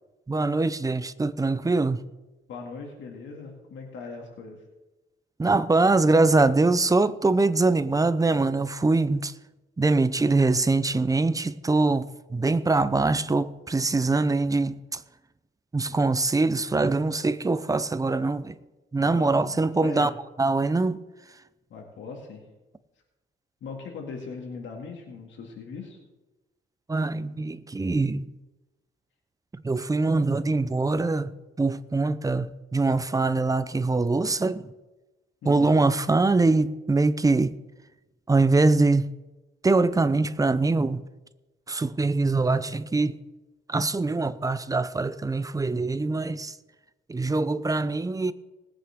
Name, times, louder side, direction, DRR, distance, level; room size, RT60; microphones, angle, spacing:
voice 1, 0.3-2.0 5.4-9.3 9.8-15.0 15.7-18.5 18.9-20.1 20.4-21.0 26.9-28.3 29.6-31.3 31.6-34.7 35.5-37.5 38.3-39.1 39.6-41.0 41.7-43.2 43.7-46.6 47.1-48.3, right 3 dB, 15° right, 0.7 m, -23 dB
voice 2, 2.5-4.6 19.0-20.1 21.7-22.5 23.6-26.0 35.4-35.8, left 4 dB, 70° left, 2.4 m, -40 dB
20.0 x 8.8 x 3.7 m
cardioid pair, 90°, 20 cm